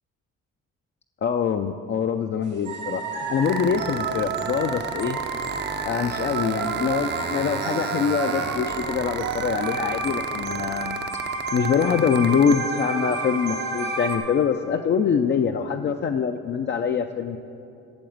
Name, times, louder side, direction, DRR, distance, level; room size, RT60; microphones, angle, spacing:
voice 1, 1.2-3.0 3.3-5.2 5.8-11.0 11.5-17.4, left 7 dB, 40° left, 5 dB, 0.4 m, -24 dB
sound 1, 2.6-14.2, right 3 dB, 85° right, 1.3 m, -30 dB
sound 2, 3.4-12.5, right 6 dB, 35° right, 0.6 m, -32 dB
8.7 x 6.9 x 7.7 m, 2.7 s
cardioid pair, 90°, 30 cm